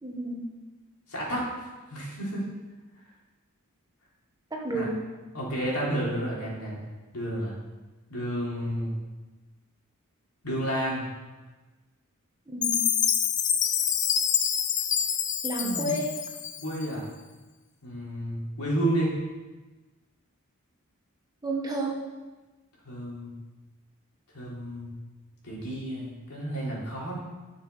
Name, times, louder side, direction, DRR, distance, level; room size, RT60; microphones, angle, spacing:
voice 1, 0.0-0.4 4.5-5.0 12.5-12.8 15.4-16.1 21.4-22.0, right 1 dB, 20° right, -1 dB, 1.5 m, -30 dB
voice 2, 1.1-1.5 1.9-2.5 4.7-4.9 5.3-6.8 7.1-7.5 8.1-8.9 10.4-11.1 15.6-15.9 16.6-17.0 17.8-19.2 22.8-23.3 24.3-24.9 25.4-27.2, right 1 dB, 85° left, -5 dB, 3.7 m, -31 dB
Chime, 12.6-16.9, left 8 dB, 35° left, 0.6 m, -26 dB
11.5 x 6.7 x 5.6 m, 1.2 s
head